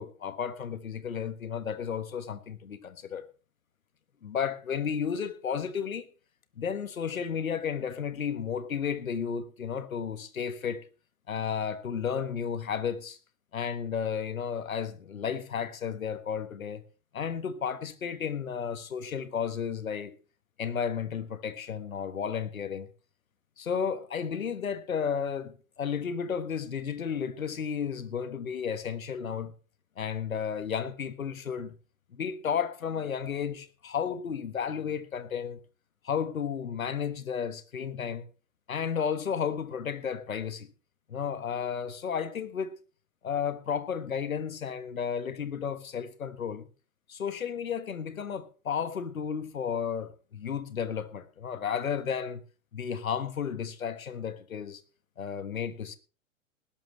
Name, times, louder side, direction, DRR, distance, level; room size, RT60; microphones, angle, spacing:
voice 1, 0.0-3.3 4.2-6.1 6.6-10.9 11.3-13.2 13.5-16.8 17.1-20.2 20.6-22.9 23.6-29.5 30.0-31.7 32.1-35.6 36.0-38.3 38.7-40.7 41.1-42.7 43.2-46.7 47.1-52.4 52.7-54.8 55.2-56.0, left 7 dB, 80° left, 1.5 m, -33 dB
19.5 x 11.5 x 3.2 m
figure-of-eight pair, 110°, 41 cm